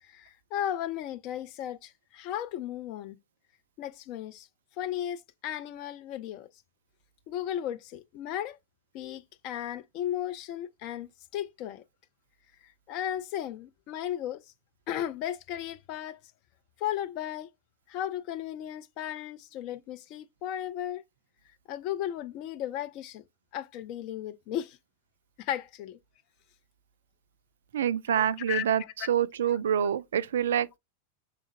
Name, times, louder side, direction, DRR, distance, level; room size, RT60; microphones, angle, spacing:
voice 1, 0.0-3.2 3.8-4.5 4.8-6.5 7.3-8.6 8.9-11.8 12.6-14.4 14.9-16.2 16.8-17.5 17.9-21.0 21.7-23.2 23.5-24.8 25.4-26.0 28.1-29.1 29.8-29.9, left 11 dB, 40° left, 0.4 m, -35 dB
voice 2, 27.7-28.8 29.1-30.8, right 9 dB, 60° right, 0.3 m, -26 dB
5.2 x 3.6 x 2.5 m
figure-of-eight pair, 90°, 0 cm